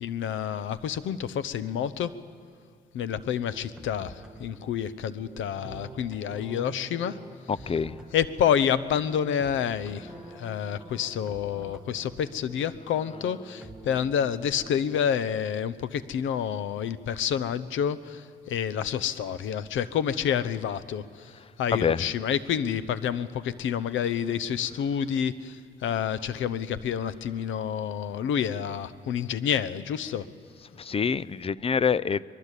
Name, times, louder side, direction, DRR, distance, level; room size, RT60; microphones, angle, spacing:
voice 1, 0.0-2.1 2.9-4.1 4.4-7.2 8.1-18.2 18.5-21.0 21.6-25.6 25.8-30.2, left 8 dB, 75° left, 16 dB, 1.0 m, -28 dB
sound 1, 3.5-15.3, right 1 dB, 5° right, 1.7 m, -47 dB
voice 2, 7.5-8.0 21.7-22.1 30.8-32.3, left 6 dB, 30° left, 20 dB, 0.5 m, -26 dB
23.0 x 22.0 x 8.4 m, 2.1 s
cardioid pair, 90°, 20 cm